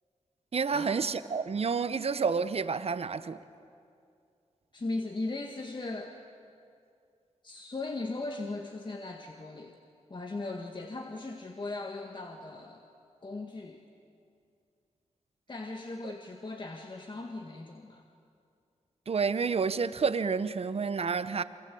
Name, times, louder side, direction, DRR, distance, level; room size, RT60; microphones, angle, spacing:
voice 1, 0.5-3.4 19.1-21.4, right 5 dB, 55° right, 1.0 m, -29 dB
voice 2, 4.7-6.1 7.4-9.7 10.1-12.8 13.2-13.8 15.5-18.0, left 2 dB, 40° left, 1.8 m, -38 dB
28.5 x 23.5 x 8.5 m
wide cardioid pair, 80°, 12 cm